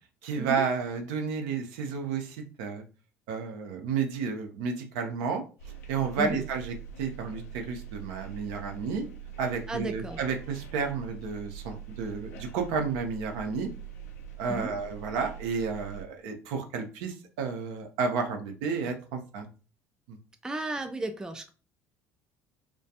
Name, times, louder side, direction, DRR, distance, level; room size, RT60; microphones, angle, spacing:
voice 1, 0.2-2.8 3.3-5.4 5.9-9.1 9.4-13.7 14.4-19.5 20.1-20.2, right 5 dB, 65° right, 4 dB, 0.5 m, -31 dB
sound 1, 5.6-16.0, right 8 dB, 75° left, 0.5 m, -43 dB
voice 2, 9.7-10.2 14.5-14.7 20.4-21.5, right 2 dB, 10° right, 7 dB, 0.3 m, -34 dB
2.3 x 2.2 x 2.7 m, 0.35 s
figure-of-eight pair, 60°, 8 cm